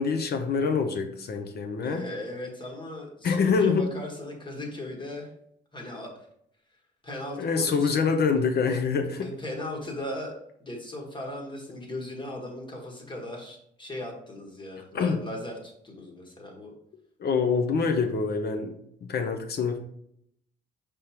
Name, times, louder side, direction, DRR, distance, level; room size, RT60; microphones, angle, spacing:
voice 1, 0.0-2.1 3.2-3.9 7.3-9.3 14.9-15.2 17.2-18.7 19.0-19.8, left 5 dB, 55° left, 6 dB, 0.6 m, -25 dB
voice 2, 1.8-5.3 5.7-6.3 7.0-7.9 9.2-10.3 10.6-16.7, left 1 dB, 25° left, 0 dB, 1.4 m, -37 dB
5.1 x 3.5 x 2.9 m, 0.72 s
cardioid pair, 90°, 20 cm